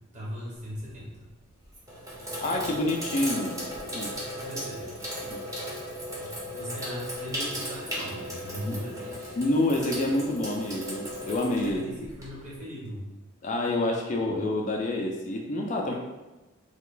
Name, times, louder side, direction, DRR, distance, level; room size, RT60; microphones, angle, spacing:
voice 1, 0.1-1.3 4.4-4.9 6.2-9.3 11.5-13.1 14.3-14.5 15.9-16.0, equal, 35° right, -6 dB, 1.1 m, -39 dB
Sink (filling or washing), 0.7-1.0 1.6-12.5, equal, 15° right, 0.7 m, -36 dB
voice 2, 2.4-4.1 5.3-5.4 8.6-8.8 9.4-12.1 13.4-15.9, left 2 dB, 35° left, 1 dB, 0.3 m, -28 dB
3.3 x 2.3 x 3.8 m, 1.1 s
head